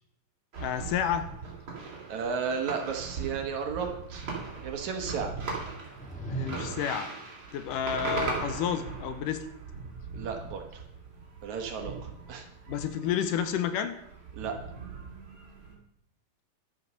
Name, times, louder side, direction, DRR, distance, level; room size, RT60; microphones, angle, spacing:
sound 1, 0.5-15.7, right 4 dB, 40° right, 3.3 m, -39 dB
voice 1, 0.6-1.3 6.3-7.1 7.5-9.5 12.7-13.9, left 9 dB, 75° left, 10 dB, 2.2 m, -30 dB
voice 2, 2.1-4.3 4.6-5.3 10.1-10.8 11.4-12.5 14.3-14.6, right 6 dB, 60° right, 4 dB, 2.5 m, -33 dB
sound 2, 5.8-7.0, right 2 dB, 5° left, 1.8 m, -38 dB
11.5 x 8.0 x 6.3 m, 0.79 s
omnidirectional pair, 4.0 m